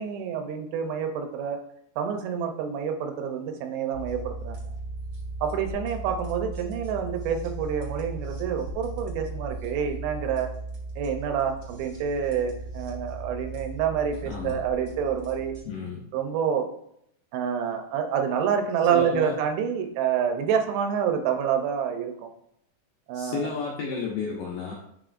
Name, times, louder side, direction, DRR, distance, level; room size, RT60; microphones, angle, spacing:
voice 1, 0.0-1.6 2.0-4.6 5.4-10.5 11.0-15.5 16.1-16.7 17.3-22.3 23.1-23.5, right 7 dB, 80° right, 6 dB, 2.8 m, -27 dB
sound 1, 3.9-15.6, right 2 dB, 50° right, 1.5 m, -37 dB
voice 2, 14.3-14.6 15.7-16.0 18.9-19.3 23.1-24.7, left 5 dB, 80° left, -2 dB, 2.0 m, -32 dB
8.7 x 5.3 x 2.5 m, 0.73 s
omnidirectional pair, 5.0 m